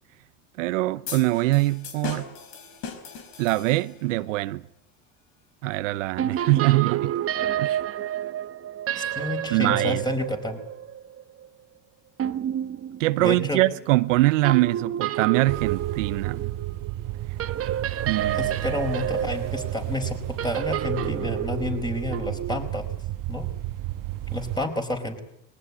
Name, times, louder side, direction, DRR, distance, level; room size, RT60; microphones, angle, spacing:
voice 1, 0.6-2.3 3.4-4.6 5.6-7.1 7.6-7.8 9.5-10.0 13.0-16.5 18.1-18.5, right 19 dB, 85° right, 0.8 m, -23 dB
sound 1, 1.1-4.1, left 6 dB, 70° left, 5.1 m, -38 dB
sound 2, 6.2-11.5 12.2-13.8 14.4-22.7, right 10 dB, 40° right, 1.2 m, -30 dB
voice 2, 8.9-10.6 13.2-13.6 18.4-22.9 23.3-23.5 24.3-25.2, left 2 dB, 10° left, 5.0 m, -30 dB
sound 3, 15.5-24.7, right 15 dB, 60° right, 1.2 m, -33 dB
21.0 x 19.0 x 9.7 m
supercardioid pair, 90°, 37 cm